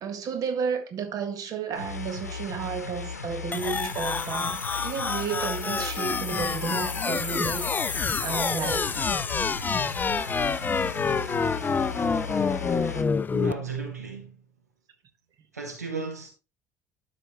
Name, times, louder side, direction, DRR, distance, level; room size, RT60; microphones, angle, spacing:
voice 1, 0.0-9.0, right 6 dB, 45° right, 1.7 m, -32 dB
sound 1, 1.7-13.0, left 5 dB, 85° left, 0.8 m, -37 dB
sound 2, 3.5-13.5, left 5 dB, 20° left, 0.5 m, -28 dB
voice 2, 13.3-14.4 15.5-16.3, right 4 dB, 85° right, 1.9 m, -34 dB
12.5 x 5.0 x 3.1 m
figure-of-eight pair, 55°, 8 cm